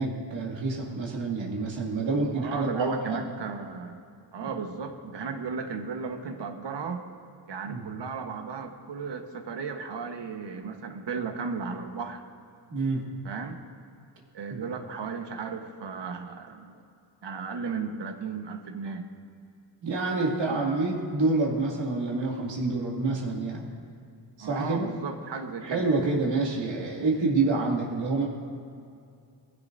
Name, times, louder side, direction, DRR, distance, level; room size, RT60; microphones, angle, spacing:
voice 1, 0.0-3.2 4.4-4.5 7.6-7.9 12.7-13.0 14.5-14.6 19.8-23.7 24.4-24.9 25.6-28.3, right 3 dB, 85° right, -3 dB, 2.5 m, -27 dB
voice 2, 2.4-4.0 4.3-7.1 7.5-12.2 13.2-13.6 14.3-16.8 17.2-19.1 24.4-25.9, right 5 dB, 70° right, 5 dB, 1.3 m, -35 dB
20.0 x 15.5 x 2.7 m, 2.5 s
cardioid pair, 90°, 44 cm